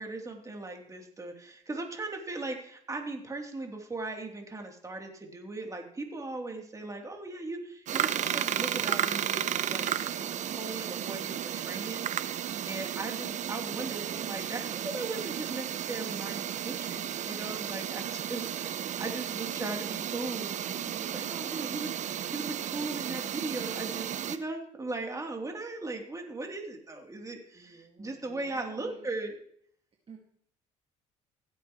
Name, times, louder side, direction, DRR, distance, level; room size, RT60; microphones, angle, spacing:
voice 1, 0.0-9.9 10.1-29.3, right 2 dB, 20° right, 2 dB, 3.1 m, -38 dB
sound 1, 7.9-24.4, right 10 dB, 55° right, 0.8 m, -33 dB
voice 2, 27.5-29.1 30.1-30.2, right 5 dB, 40° right, 1 dB, 2.1 m, -51 dB
16.5 x 8.4 x 3.1 m, 0.63 s
hypercardioid pair, 65°, 15 cm